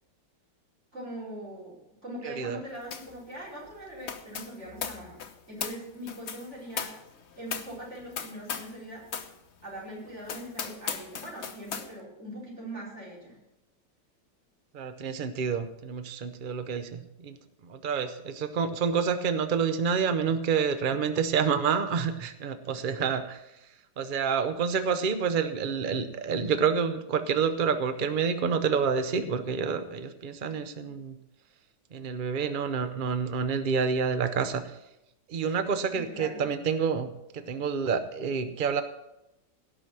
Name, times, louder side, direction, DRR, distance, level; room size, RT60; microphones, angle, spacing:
voice 1, 0.9-5.2 5.5-6.9 7.4-9.1 9.6-13.4 35.9-36.4, right 1 dB, 35° right, -4 dB, 5.1 m, -41 dB
voice 2, 2.2-2.6 14.7-17.4 17.6-23.4 24.0-31.2 31.9-34.8 35.3-38.8, right 6 dB, 75° right, 10 dB, 0.4 m, -28 dB
sound 1, 2.9-3.2 3.4-8.8 9.1-9.3 9.8-9.9 10.2-11.9, left 7 dB, 50° left, 0.9 m, -38 dB
17.0 x 6.2 x 6.1 m, 0.88 s
omnidirectional pair, 2.0 m